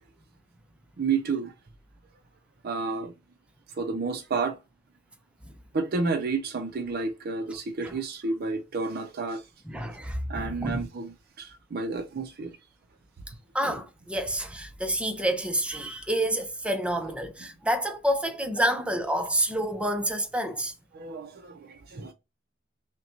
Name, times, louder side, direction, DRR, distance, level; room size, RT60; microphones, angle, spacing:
voice 1, 1.0-1.5 2.6-3.1 3.8-4.6 5.7-9.4 10.3-12.6 20.9-22.1, right 4 dB, 50° right, 0.5 m, -30 dB
voice 2, 9.7-10.8 13.5-20.7, right 1 dB, 5° right, 0.6 m, -28 dB
5.7 x 2.2 x 2.7 m
head